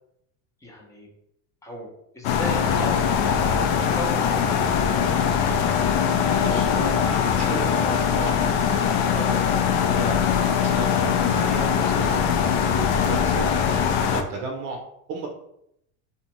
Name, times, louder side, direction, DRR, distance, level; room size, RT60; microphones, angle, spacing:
voice 1, 0.6-1.1 1.6-1.9 2.1-4.9, equal, 10° left, -2 dB, 0.5 m, -35 dB
sound 1, 2.2-14.2, left 7 dB, 65° left, 0.5 m, -22 dB
voice 2, 6.4-8.4 9.2-10.2 10.6-13.5 14.1-14.8 15.1-15.3, right 3 dB, 60° right, 2 dB, 0.6 m, -34 dB
2.6 x 2.2 x 2.9 m, 0.76 s
supercardioid pair, 135°, 37 cm